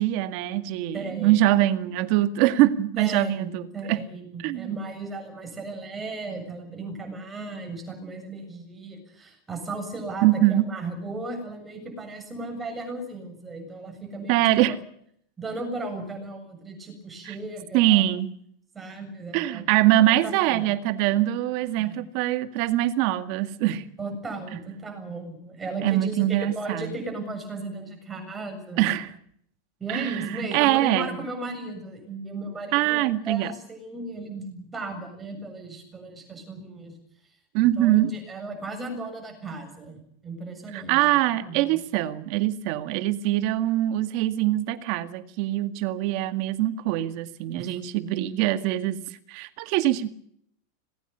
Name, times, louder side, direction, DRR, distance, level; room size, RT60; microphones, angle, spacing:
voice 1, 0.0-3.6 3.9-4.0 4.4-4.8 10.2-10.6 14.3-14.8 17.3-17.4 17.7-18.4 19.3-23.9 25.8-26.9 28.8-29.1 29.9-31.2 32.7-33.5 37.5-38.1 40.7-50.1, right 15 dB, 40° right, 2.0 m, -23 dB
voice 2, 0.9-1.3 3.0-14.3 15.4-18.1 18.7-19.7 19.9-20.7 21.8-22.0 24.0-28.9 29.8-37.0 37.8-41.8 47.5-47.8, right 2 dB, 10° right, 7.3 m, -36 dB
26.5 x 20.5 x 7.0 m
supercardioid pair, 170°, 0 cm